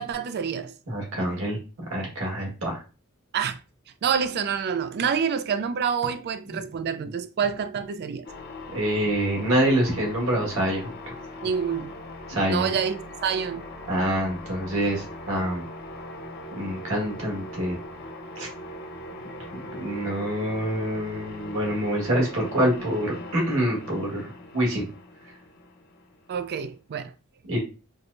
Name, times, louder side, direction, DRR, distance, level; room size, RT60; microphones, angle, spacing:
voice 1, 0.0-0.7 3.3-3.6 4.0-8.3 11.4-11.9 12.5-13.7 26.3-27.1, right 7 dB, 50° right, 0.3 m, -27 dB
voice 2, 0.9-1.6 1.9-2.8 8.7-10.9 12.3-12.7 13.9-15.6 16.5-17.8 18.4-18.5 19.5-24.9 27.4-27.6, right 1 dB, 65° right, 1.5 m, -26 dB
sound 1, 8.2-26.6, left 2 dB, 45° left, 0.6 m, -40 dB
4.5 x 2.2 x 2.5 m
head